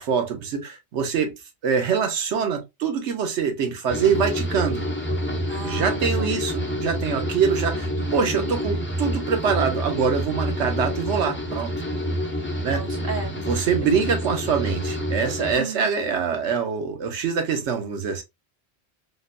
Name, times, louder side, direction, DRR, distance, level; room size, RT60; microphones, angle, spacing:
voice 1, 0.0-1.4 1.6-4.8 5.6-11.7 12.6-12.9 13.4-18.2, right 6 dB, 85° right, 1.1 m, -24 dB
sound 1, 3.9-15.5, equal, 20° left, 0.4 m, -28 dB
voice 2, 5.5-6.4 8.0-8.5 12.7-13.4 13.8-14.2 15.5-15.9, right 4 dB, 60° right, 0.9 m, -36 dB
3.7 x 2.1 x 2.4 m
omnidirectional pair, 1.2 m